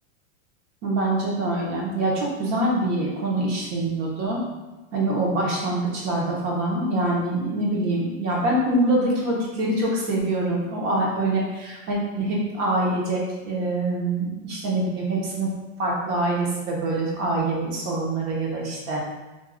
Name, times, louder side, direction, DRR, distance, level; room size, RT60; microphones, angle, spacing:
voice 1, 0.8-4.4 4.9-15.5 15.8-19.0, right 2 dB, 45° right, -3 dB, 1.2 m, -25 dB
3.5 x 2.9 x 2.3 m, 1.1 s
hypercardioid pair, 120°, 38 cm